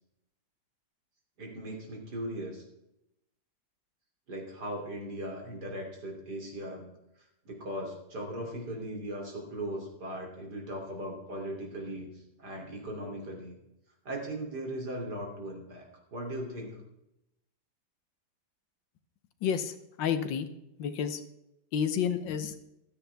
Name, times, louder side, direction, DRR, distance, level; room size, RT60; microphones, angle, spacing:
voice 1, 1.4-2.6 4.3-6.9 7.5-12.1 12.4-13.5 14.1-16.8, right 1 dB, 60° right, 1 dB, 3.6 m, -38 dB
voice 2, 19.4-19.7 20.0-20.5 20.8-21.2 21.7-22.7, left 8 dB, 80° left, 10 dB, 1.7 m, -30 dB
15.5 x 13.0 x 3.5 m, 0.85 s
omnidirectional pair, 2.0 m